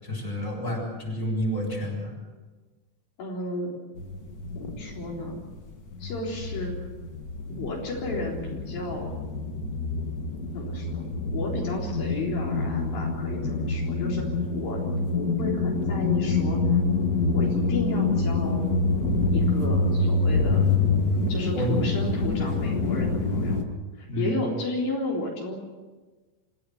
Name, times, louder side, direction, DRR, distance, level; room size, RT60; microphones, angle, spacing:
voice 1, 0.0-2.1 21.6-21.7 24.1-24.4, equal, 20° left, -1 dB, 7.6 m, -29 dB
voice 2, 3.2-3.7 4.5-5.4 6.0-6.9 7.5-9.1 10.5-11.1 11.3-14.8 15.1-16.6 17.3-18.6 19.3-20.7 21.3-23.6 24.0-25.6, left 2 dB, 75° left, -2 dB, 5.6 m, -33 dB
sound 1, 4.0-5.6 5.9-23.6, left 3 dB, 35° left, 1.5 m, -26 dB
27.0 x 16.5 x 7.9 m, 1.3 s
omnidirectional pair, 4.2 m